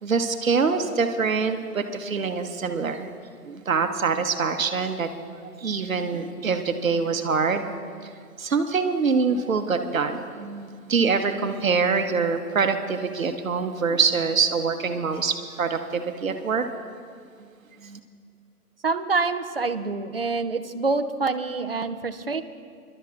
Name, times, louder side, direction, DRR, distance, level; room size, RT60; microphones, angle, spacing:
voice 1, 0.0-3.1 3.4-8.1 8.4-16.6 17.4-17.5 17.8-18.0, right 5 dB, 60° right, 7 dB, 1.0 m, -25 dB
voice 2, 18.8-22.4, right 4 dB, 40° right, 8 dB, 0.5 m, -26 dB
29.0 x 12.0 x 2.5 m, 2.2 s
hypercardioid pair, 165°, 46 cm